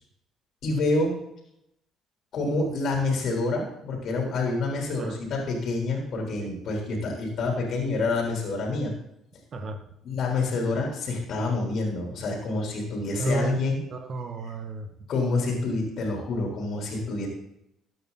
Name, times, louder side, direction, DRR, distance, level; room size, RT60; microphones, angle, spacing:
voice 1, 0.6-1.2 2.3-8.9 10.0-13.8 15.1-17.3, left 3 dB, 60° left, 0 dB, 3.9 m, -27 dB
voice 2, 5.0-5.3 6.4-6.5 9.5-9.8 13.2-14.9, right 2 dB, 50° right, 6 dB, 2.1 m, -32 dB
14.5 x 9.8 x 4.1 m, 0.79 s
hypercardioid pair, 55°, 0 cm